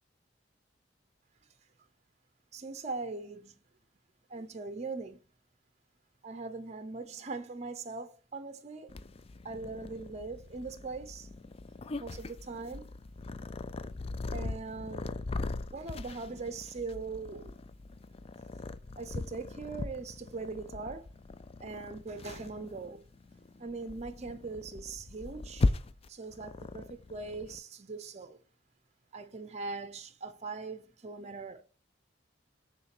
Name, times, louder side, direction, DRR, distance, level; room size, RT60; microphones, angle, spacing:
voice 1, 2.5-3.6 4.3-5.2 6.2-8.9 9.4-11.3 12.0-12.9 14.3-15.1 15.7-17.5 19.0-21.1 21.6-23.0 23.6-25.8 26.1-28.4 29.1-31.6, right 3 dB, 40° right, 0.7 m, -41 dB
Purr, 8.9-27.6, left 3 dB, 30° left, 0.4 m, -39 dB
6.8 x 3.2 x 6.0 m
head